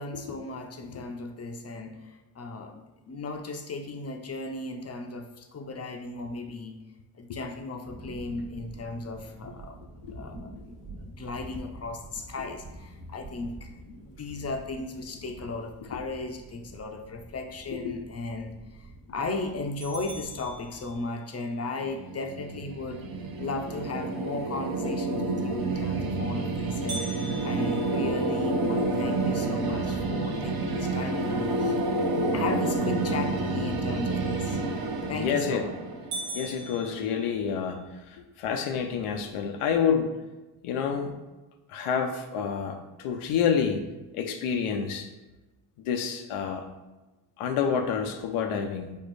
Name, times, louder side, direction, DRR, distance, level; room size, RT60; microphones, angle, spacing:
voice 1, 0.0-6.8 7.2-9.8 10.1-23.0 23.4-31.8 32.3-34.6 35.1-35.8, left 3 dB, 30° left, 4 dB, 0.5 m, -36 dB
sound 1, 7.8-21.0, right 1 dB, 35° right, 1.3 m, -47 dB
sound 2, 19.8-21.4 26.9-29.0 29.6-29.7 30.2-30.3 30.9-31.2 34.8-35.3 35.6-35.7 36.1-37.8, right 2 dB, 75° right, 0.9 m, -41 dB
sound 3, 21.8-36.9, right 2 dB, 50° right, 0.7 m, -29 dB
voice 2, 35.1-35.7 36.3-37.8 38.1-40.1 40.6-41.1 41.7-43.9 44.1-45.1 45.8-46.7 47.4-48.9, left 7 dB, 90° left, 6 dB, 0.6 m, -28 dB
4.3 x 2.4 x 3.2 m, 1.1 s
cardioid pair, 70°, 48 cm